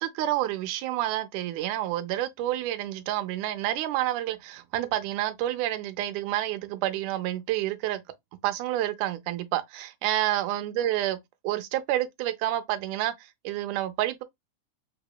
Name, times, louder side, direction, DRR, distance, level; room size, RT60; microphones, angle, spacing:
voice 1, 0.0-8.0 8.4-11.2 11.4-13.1 13.5-14.2, right 14 dB, 85° right, 2.0 m, -29 dB
4.8 x 2.8 x 2.2 m
omnidirectional pair, 3.5 m